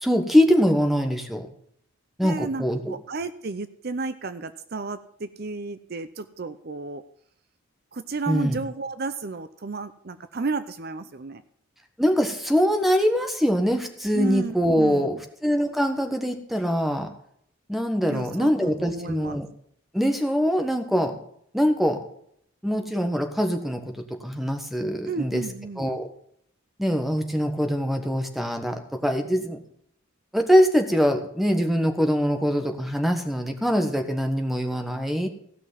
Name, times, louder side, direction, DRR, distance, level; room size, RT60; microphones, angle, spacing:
voice 1, 0.0-1.5 2.2-2.9 8.3-8.6 12.0-17.1 17.7-19.5 19.9-21.2 21.5-22.0 22.6-25.4 25.8-26.1 26.8-29.6 30.3-35.3, equal, ahead, 5 dB, 1.3 m, -23 dB
voice 2, 2.2-7.0 7.9-11.4 14.1-15.2 18.1-19.4 25.1-25.9, right 3 dB, 50° right, 12 dB, 0.6 m, -32 dB
15.5 x 6.1 x 7.3 m, 0.67 s
head